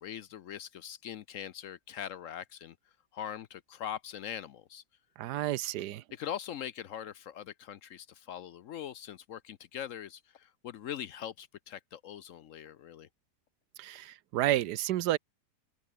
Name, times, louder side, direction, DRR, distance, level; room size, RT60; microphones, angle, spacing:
voice 1, 0.0-2.8 3.1-4.8 6.1-13.1, left 9 dB, 65° left, 0.9 m, -42 dB
voice 2, 5.2-6.0 13.8-15.2, right 14 dB, 85° right, 1.3 m, -30 dB
open air
omnidirectional pair, 1.7 m